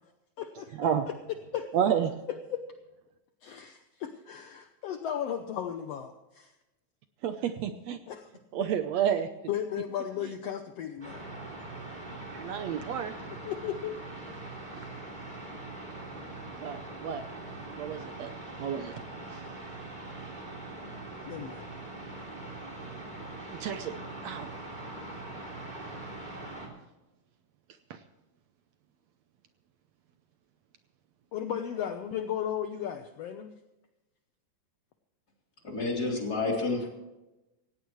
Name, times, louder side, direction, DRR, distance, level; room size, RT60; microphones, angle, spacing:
voice 1, 0.4-0.9 1.5-1.7 2.5-2.6 3.4-6.5 8.1-8.3 8.5-8.7 9.5-11.2 13.4-14.0 21.3-21.6 31.3-33.5, left 9 dB, 70° left, 7 dB, 1.7 m, -35 dB
voice 2, 1.7-2.1 7.2-8.0 8.5-9.3 12.3-13.1 16.6-17.2 17.8-18.3 18.6-19.0 19.3-19.4 23.6-23.9 24.2-24.5 27.9-28.0, right 9 dB, 70° right, 9 dB, 1.8 m, -30 dB
sound 1, 11.0-26.7, right 2 dB, 15° right, 3.2 m, -42 dB
voice 3, 35.6-36.9, left 3 dB, 30° left, 0 dB, 3.9 m, -29 dB
17.5 x 17.0 x 3.2 m, 1.0 s
omnidirectional pair, 3.5 m